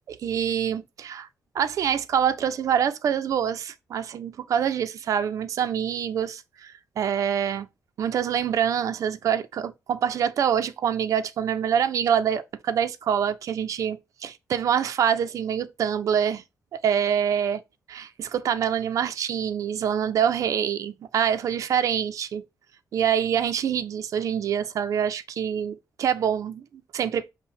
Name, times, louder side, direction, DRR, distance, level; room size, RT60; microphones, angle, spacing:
voice 1, 0.1-1.3 1.5-7.7 8.0-16.4 16.7-17.6 17.9-22.4 22.9-26.6 26.9-27.3, right 8 dB, 60° right, 0.4 m, -25 dB
5.5 x 2.1 x 4.2 m
wide cardioid pair, 160°, 6 cm